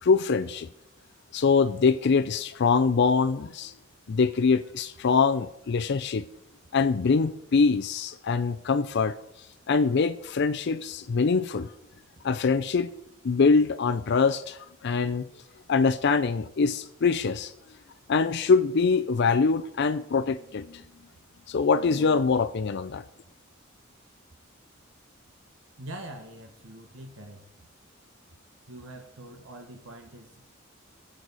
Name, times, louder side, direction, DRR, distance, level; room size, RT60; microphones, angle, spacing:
voice 1, 0.0-0.7 1.3-3.7 4.1-6.2 6.7-9.2 9.7-11.7 12.2-12.9 13.2-15.3 15.7-17.5 18.1-20.8 21.5-23.0, left 4 dB, 55° left, 11 dB, 0.4 m, -24 dB
voice 2, 25.8-27.4 28.7-30.5, right 1 dB, 65° right, 3 dB, 1.3 m, -44 dB
23.0 x 7.8 x 4.0 m, 0.83 s
head